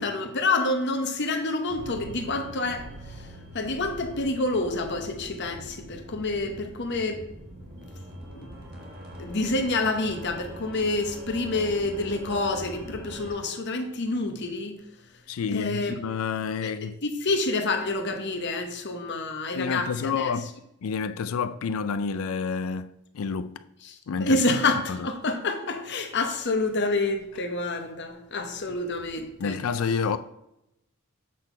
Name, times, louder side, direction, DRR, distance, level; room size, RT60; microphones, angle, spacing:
voice 1, 0.0-3.3 3.5-7.2 8.3-8.5 9.2-14.8 15.5-15.9 17.0-20.3 23.8-29.6, left 2 dB, 55° left, 0.9 m, -28 dB
sound 1, 1.7-13.3, right 1 dB, 50° right, 1.6 m, -43 dB
voice 2, 15.3-16.9 19.5-20.5 20.8-23.6 24.1-24.4 24.9-25.1 29.4-30.2, left 5 dB, 85° left, 0.4 m, -29 dB
7.6 x 4.1 x 4.4 m
head